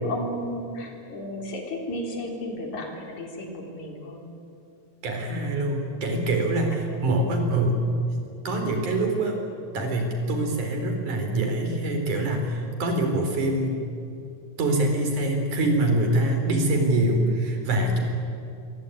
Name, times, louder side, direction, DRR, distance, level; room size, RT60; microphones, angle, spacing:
voice 1, 0.0-4.3 6.9-7.0, left 1 dB, 70° left, 1 dB, 5.3 m, -33 dB
voice 2, 5.0-7.8 8.5-9.4 9.7-13.8 14.6-18.0, right 1 dB, 85° right, 4 dB, 5.6 m, -24 dB
27.0 x 22.5 x 9.3 m, 2.6 s
omnidirectional pair, 3.4 m